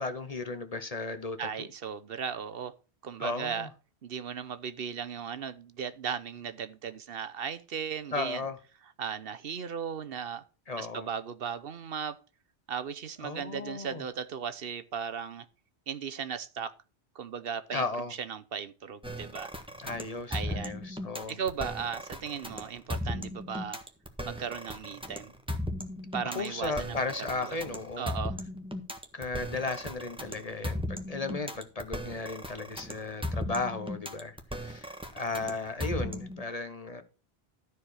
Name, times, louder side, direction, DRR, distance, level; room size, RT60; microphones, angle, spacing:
voice 1, 0.0-1.7 3.2-3.7 8.1-8.6 10.7-11.1 13.2-14.0 17.7-18.1 19.8-21.3 26.3-28.1 29.1-37.0, left 3 dB, 40° left, 1.0 m, -35 dB
voice 2, 1.4-2.7 3.0-3.7 4.0-8.4 9.0-10.4 10.8-12.2 12.7-15.5 15.9-16.7 17.1-17.9 18.2-19.5 20.3-20.8 21.3-23.8 24.2-25.3 26.1-27.0 27.3-27.6 28.0-28.4, right 7 dB, 65° right, 0.9 m, -36 dB
sound 1, 19.0-36.4, left 1 dB, 5° right, 1.4 m, -37 dB
13.0 x 4.7 x 6.3 m
omnidirectional pair, 1.1 m